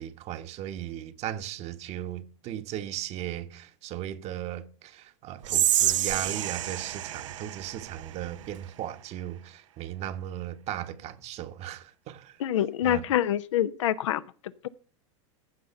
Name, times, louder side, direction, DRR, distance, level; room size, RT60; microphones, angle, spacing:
voice 1, 0.0-12.4 12.8-13.0, right 11 dB, 40° right, 1.1 m, -37 dB
Whispering, 5.4-8.7, right 12 dB, 80° right, 0.7 m, -28 dB
voice 2, 12.4-14.2, left 11 dB, 75° left, 0.7 m, -26 dB
14.5 x 5.8 x 5.5 m
hypercardioid pair, 105°, 16 cm